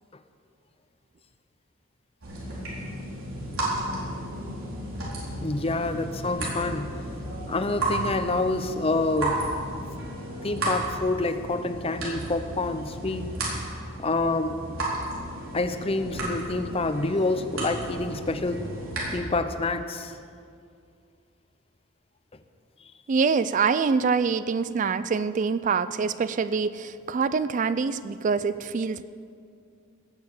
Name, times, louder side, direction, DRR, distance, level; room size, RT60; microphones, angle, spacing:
sound 1, 2.2-19.1, right 1 dB, 90° right, 4.4 m, -33 dB
voice 1, 5.4-6.9 7.5-9.4 10.4-13.3 14.0-14.8 15.5-18.6 19.1-20.2, left 2 dB, 30° left, 9 dB, 0.7 m, -27 dB
voice 2, 23.1-29.0, right 5 dB, 35° right, 14 dB, 0.3 m, -25 dB
18.0 x 7.0 x 7.2 m, 2.3 s
head